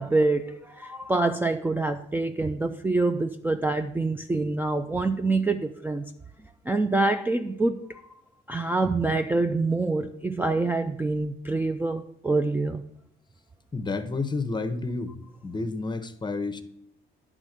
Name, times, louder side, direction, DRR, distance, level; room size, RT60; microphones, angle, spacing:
voice 1, 0.0-6.1 6.7-8.0 8.5-12.8, right 3 dB, 10° right, 0.4 m, -26 dB
voice 2, 13.7-15.1 15.4-16.6, left 3 dB, 20° left, 0.8 m, -30 dB
10.0 x 3.6 x 6.5 m
cardioid pair, 90°, 20 cm